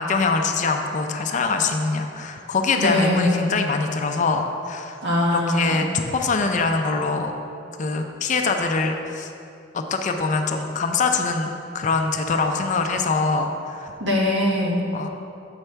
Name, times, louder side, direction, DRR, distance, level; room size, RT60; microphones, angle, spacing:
voice 1, 0.0-5.0 5.3-7.3 7.8-9.3 9.7-13.9 14.9-15.1, left 4 dB, 40° left, 5 dB, 0.4 m, -23 dB
voice 2, 2.8-3.5 5.0-5.8 14.0-14.9, left 1 dB, 65° right, -2 dB, 1.2 m, -21 dB
7.9 x 5.9 x 3.3 m, 2.6 s
head